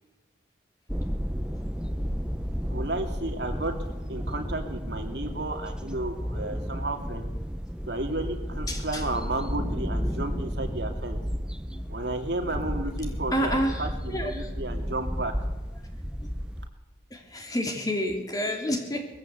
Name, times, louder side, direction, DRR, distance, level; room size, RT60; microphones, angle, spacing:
sound 1, 0.9-16.7, equal, 5° right, 0.8 m, -32 dB
voice 1, 2.7-3.8 4.1-7.3 7.9-11.2 11.9-15.3, right 2 dB, 65° right, 4 dB, 2.6 m, -33 dB
voice 2, 8.7-9.0 10.1-10.2 11.7-11.8 12.5-12.6 13.0-14.5 16.2-16.3 17.1-19.1, equal, 20° left, 3 dB, 2.8 m, -30 dB
20.5 x 15.0 x 8.2 m, 1.2 s
head